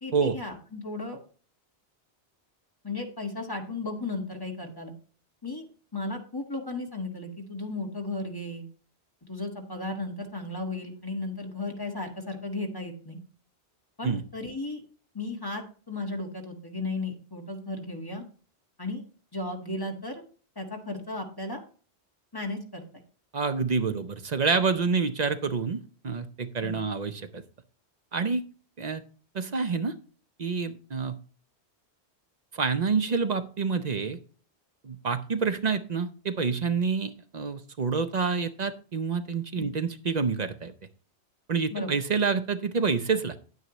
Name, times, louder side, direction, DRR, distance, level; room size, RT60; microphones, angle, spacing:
voice 1, 0.0-1.2 2.8-4.9 5.4-5.6 5.9-8.6 9.3-13.2 14.0-14.8 15.1-18.2 18.8-19.0 19.3-20.2 20.5-21.6 22.3-23.0 26.6-26.8 39.6-39.7 41.7-42.0, left 2 dB, 20° left, 2 dB, 1.5 m, -35 dB
voice 2, 23.3-27.4 28.1-28.4 28.8-29.0 29.3-29.9 30.4-31.2 32.5-34.2 34.8-40.7 41.5-43.4, right 5 dB, 45° right, 9 dB, 0.7 m, -28 dB
9.5 x 9.3 x 3.0 m, 0.40 s
omnidirectional pair, 1.1 m